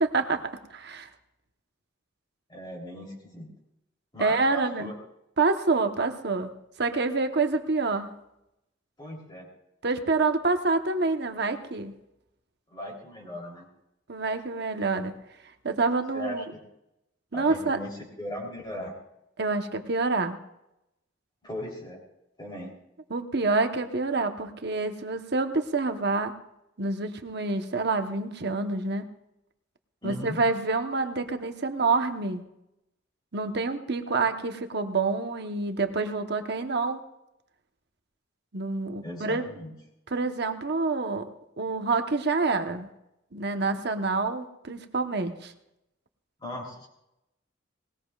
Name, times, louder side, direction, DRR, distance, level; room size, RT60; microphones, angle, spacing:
voice 1, 0.0-1.1 4.2-4.9 5.4-6.5 6.8-8.1 9.8-11.9 14.1-15.1 15.6-16.5 17.3-17.8 19.4-20.4 23.1-26.3 26.8-29.0 30.0-32.4 33.3-37.0 38.5-39.5 40.1-41.3 41.6-42.9 43.3-45.5, right 3 dB, 55° right, 6 dB, 1.1 m, -27 dB
voice 2, 2.5-3.5 4.1-4.9 9.0-9.5 12.7-13.7 16.1-16.4 17.3-18.9 21.4-22.0 22.4-22.7 30.0-30.4 39.0-39.7 46.4-46.9, left 1 dB, 25° left, -3 dB, 3.5 m, -38 dB
19.5 x 19.5 x 2.4 m, 0.86 s
head